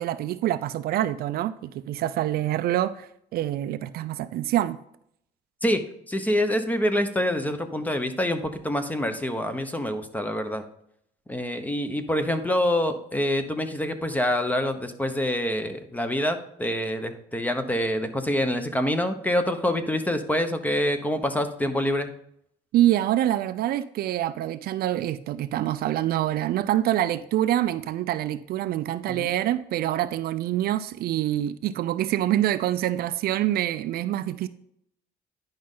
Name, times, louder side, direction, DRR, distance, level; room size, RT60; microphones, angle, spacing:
voice 1, 0.0-4.8 22.7-34.5, right 13 dB, 65° right, 0.4 m, -26 dB
voice 2, 6.1-10.6 11.3-22.1 29.1-29.3, left 1 dB, 10° left, 0.9 m, -26 dB
10.5 x 5.3 x 3.8 m
cardioid pair, 110°, 17 cm